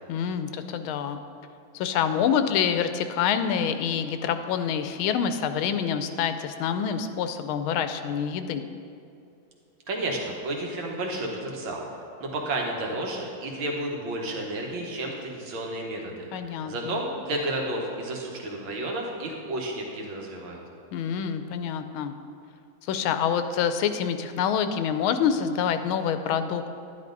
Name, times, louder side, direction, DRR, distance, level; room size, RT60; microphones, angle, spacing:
voice 1, 0.1-1.2 1.7-8.7 16.3-17.0 20.9-22.1 22.9-26.7, left 8 dB, 90° left, 9 dB, 1.5 m, -26 dB
voice 2, 9.9-11.8 12.2-20.6, right 1 dB, 75° right, 0 dB, 2.1 m, -31 dB
11.0 x 10.5 x 3.9 m, 2.5 s
omnidirectional pair, 2.2 m